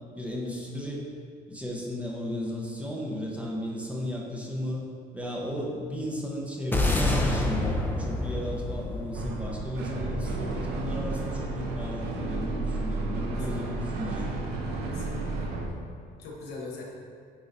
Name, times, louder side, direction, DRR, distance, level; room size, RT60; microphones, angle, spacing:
voice 1, 0.1-1.1 1.5-4.8 5.1-14.3, left 1 dB, 10° right, -3 dB, 1.0 m, -35 dB
sound 1, 6.7-11.2, left 2 dB, 10° left, 0.7 m, -28 dB
sound 2, 9.1-15.7, right 3 dB, 80° right, 0.9 m, -32 dB
voice 2, 13.3-14.3 14.9-15.5 16.2-17.0, left 2 dB, 75° left, -1 dB, 1.4 m, -42 dB
9.2 x 4.8 x 2.7 m, 2.2 s
cardioid pair, 110°, 17 cm